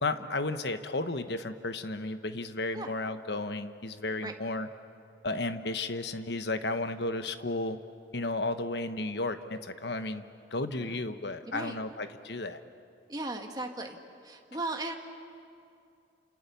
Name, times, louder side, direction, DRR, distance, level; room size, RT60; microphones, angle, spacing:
voice 1, 0.0-4.7 5.2-7.8 8.1-10.2 10.5-12.6, left 2 dB, 60° left, 9 dB, 1.2 m, -33 dB
voice 2, 11.4-11.8 13.1-14.0 14.2-14.9, right 2 dB, 20° right, 3 dB, 1.8 m, -37 dB
29.5 x 27.5 x 7.0 m, 2.5 s
head